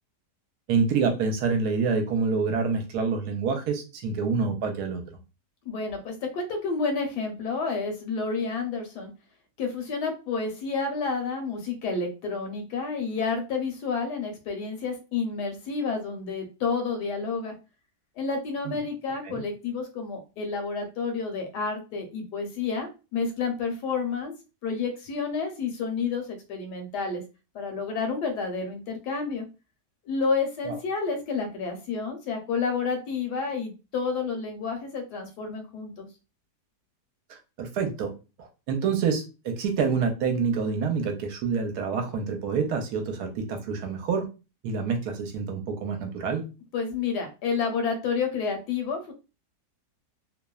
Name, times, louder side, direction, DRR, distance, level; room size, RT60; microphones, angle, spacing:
voice 1, 0.7-5.0 18.7-18.8 19.2-19.4 30.6-30.8 37.3-38.1 38.4-44.3 44.6-46.4, right 5 dB, 75° right, 4 dB, 1.1 m, -27 dB
voice 2, 5.7-9.1 9.6-17.5 18.2-24.3 24.6-27.2 27.5-29.4 30.1-36.1 46.7-49.1, left 4 dB, 80° left, 4 dB, 1.3 m, -30 dB
3.0 x 2.0 x 2.2 m, 0.30 s
omnidirectional pair, 1.8 m